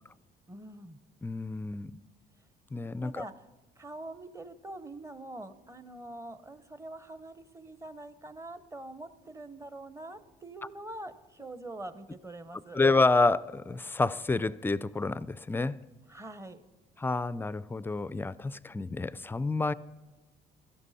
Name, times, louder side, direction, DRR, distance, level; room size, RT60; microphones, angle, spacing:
voice 1, 0.5-1.0 3.0-3.5 3.8-12.8 16.1-16.6, right 2 dB, 15° right, 0.8 m, -44 dB
voice 2, 1.2-2.0 2.7-3.2 12.7-15.8 17.0-19.7, left 3 dB, 15° left, 0.3 m, -28 dB
16.0 x 13.0 x 4.2 m
cardioid pair, 110°, 17 cm